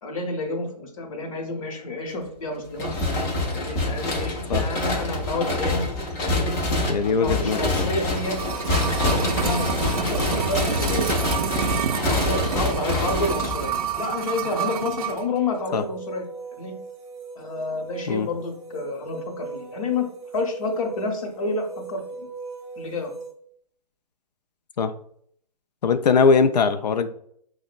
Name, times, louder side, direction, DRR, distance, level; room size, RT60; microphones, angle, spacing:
voice 1, 0.0-2.9 3.5-5.9 6.2-6.4 7.0-11.1 12.0-16.3 16.5-16.7 17.4-20.1 20.3-22.3 22.8-23.1, left 2 dB, 55° left, 3 dB, 0.9 m, -29 dB
sound 1, 2.8-14.0, left 2 dB, 15° left, 0.4 m, -26 dB
voice 2, 6.9-7.9 15.7-15.8 18.1-18.3 24.8-24.9 25.8-27.1, left 5 dB, 80° left, 10 dB, 0.4 m, -21 dB
sound 2, 8.1-15.3 15.5-15.6, right 8 dB, 60° right, 0.4 m, -28 dB
sound 3, 15.7-23.3, right 5 dB, 20° right, 0.7 m, -40 dB
5.2 x 2.1 x 2.4 m, 0.65 s
hypercardioid pair, 135°, 21 cm